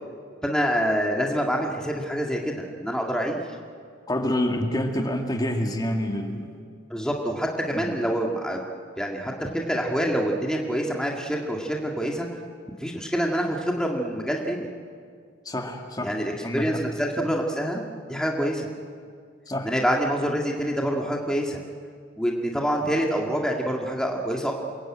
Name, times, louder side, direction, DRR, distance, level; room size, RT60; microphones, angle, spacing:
voice 1, 0.4-3.4 6.9-8.6 9.0-12.3 12.8-14.7 16.0-17.8 18.1-18.7 19.6-21.6 22.2-24.5, equal, 5° left, 0 dB, 1.9 m, -26 dB
voice 2, 4.1-6.6 7.7-7.9 15.5-16.2 16.4-16.8 19.5-19.7, left 1 dB, 20° left, 3 dB, 2.1 m, -27 dB
28.0 x 22.5 x 9.0 m, 2.2 s
head